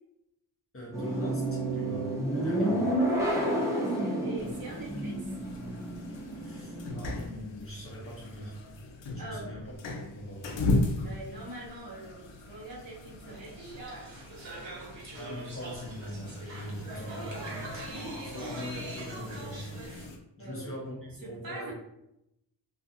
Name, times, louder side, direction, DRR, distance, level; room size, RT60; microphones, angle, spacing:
voice 1, 0.7-3.0 6.3-8.6 9.1-9.6 10.0-10.6 15.0-19.8 20.4-21.7, equal, 30° left, -3 dB, 0.7 m, -42 dB
sound 1, 0.9-7.2, right 1 dB, 5° right, 0.5 m, -30 dB
voice 2, 3.7-5.2 9.2-9.5 11.0-14.1 20.4-20.7 21.2-21.7, right 2 dB, 55° right, -4 dB, 0.8 m, -43 dB
sound 2, 4.4-20.2, left 2 dB, 80° left, 0.5 m, -38 dB
sound 3, 13.3-20.1, right 2 dB, 85° right, 0.9 m, -42 dB
2.6 x 2.4 x 2.5 m, 0.84 s
wide cardioid pair, 150°, 43 cm